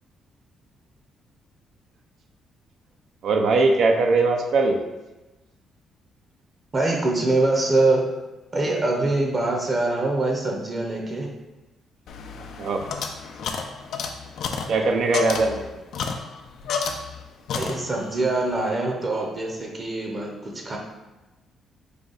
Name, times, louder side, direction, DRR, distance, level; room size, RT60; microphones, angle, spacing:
voice 1, 3.2-4.8 12.6-12.8 14.7-15.7, right 3 dB, 70° right, 4 dB, 0.5 m, -20 dB
voice 2, 6.7-8.0 8.5-11.3 17.5-20.8, right 2 dB, 30° right, 1 dB, 0.7 m, -24 dB
sound 1, 12.1-17.2 17.5-18.2, left 5 dB, 75° left, 0.4 m, -31 dB
5.0 x 2.3 x 3.9 m, 1.1 s
cardioid pair, 90°, 0 cm